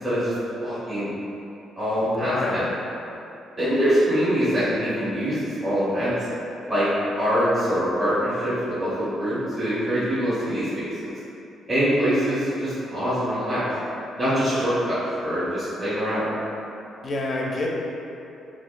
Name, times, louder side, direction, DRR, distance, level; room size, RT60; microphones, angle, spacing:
voice 1, 0.0-1.1 1.8-2.6 3.6-6.1 6.7-6.9 7.1-11.1 11.7-13.6 14.2-16.3, equal, 20° right, -14 dB, 1.1 m, -24 dB
voice 2, 2.1-2.7 17.0-17.8, left 2 dB, 40° left, -2 dB, 0.4 m, -27 dB
3.6 x 2.3 x 2.5 m, 2.8 s
cardioid pair, 90°, 0 cm